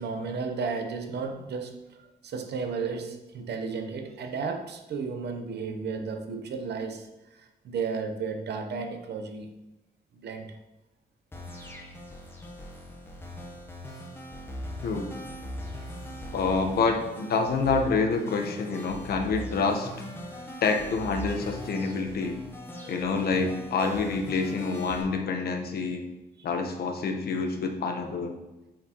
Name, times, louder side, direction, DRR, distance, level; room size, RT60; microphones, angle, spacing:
voice 1, 0.0-9.5 10.1-10.5 22.7-22.9 26.4-26.5, right 5 dB, 90° right, 6 dB, 0.7 m, -34 dB
sound 1, 11.3-25.0, left 1 dB, 15° left, 0.8 m, -40 dB
voice 2, 16.3-19.9 20.6-22.4 22.9-26.0 26.4-28.4, left 4 dB, 70° left, 5 dB, 0.8 m, -27 dB
7.5 x 4.4 x 2.9 m, 1.0 s
wide cardioid pair, 165°, 17 cm